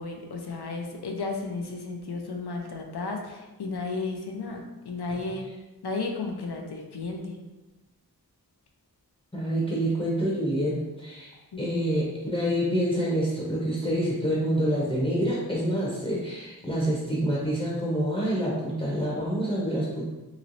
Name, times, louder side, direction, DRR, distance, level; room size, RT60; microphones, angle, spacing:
voice 1, 0.0-5.4 5.8-7.4 11.5-11.7, left 3 dB, 85° left, 2 dB, 0.6 m, -33 dB
voice 2, 9.3-20.0, equal, 15° left, -6 dB, 0.7 m, -27 dB
3.0 x 2.9 x 2.6 m, 1.1 s
wide cardioid pair, 55°, 38 cm